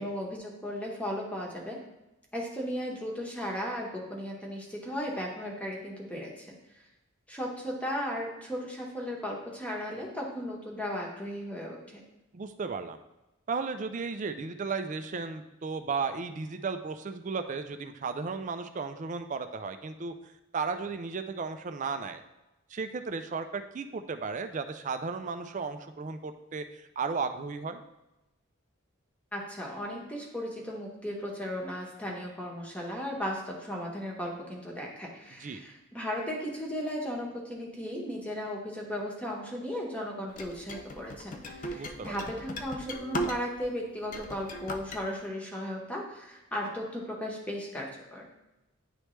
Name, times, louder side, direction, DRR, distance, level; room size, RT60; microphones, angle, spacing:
voice 1, 0.0-1.8 2.3-6.8 7.3-12.0 29.3-48.3, equal, 5° left, -2 dB, 1.0 m, -36 dB
voice 2, 12.3-13.0 13.5-20.1 20.5-22.2 22.7-27.8 35.4-35.6 41.7-42.2, right 4 dB, 40° right, 8 dB, 0.4 m, -34 dB
sound 1, 40.4-43.7 44.0-45.0, equal, 40° left, 0.5 m, -37 dB
9.8 x 3.3 x 3.1 m, 0.97 s
head